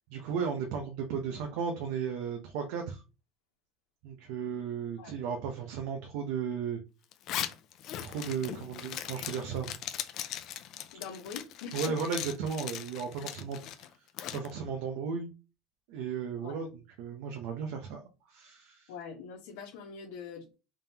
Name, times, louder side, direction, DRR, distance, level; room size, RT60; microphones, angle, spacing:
voice 1, 0.1-3.0 4.0-6.8 8.0-9.8 11.7-14.1 14.3-15.3 15.9-18.9, right 6 dB, 60° right, 0.7 m, -35 dB
Zipper (clothing), 7.1-14.5, left 11 dB, 40° left, 0.4 m, -39 dB
voice 2, 10.9-11.9 16.4-16.6 18.9-20.6, left 6 dB, 80° left, 1.1 m, -44 dB
3.6 x 3.6 x 2.9 m
cardioid pair, 180°, 0 cm